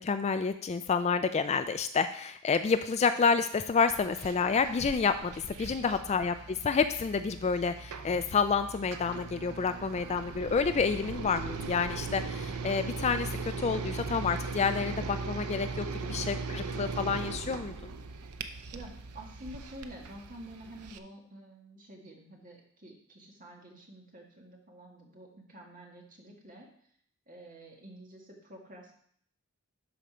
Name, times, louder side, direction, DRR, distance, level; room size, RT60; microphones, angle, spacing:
voice 1, 0.0-17.9, left 5 dB, 30° left, 10 dB, 0.3 m, -29 dB
sound 1, 3.9-21.0, right 4 dB, 85° right, 0.7 m, -39 dB
voice 2, 5.8-6.2 16.0-16.3 18.7-26.7 27.3-28.9, right 1 dB, 40° right, 0 dB, 1.8 m, -49 dB
12.0 x 4.3 x 5.0 m, 0.64 s
head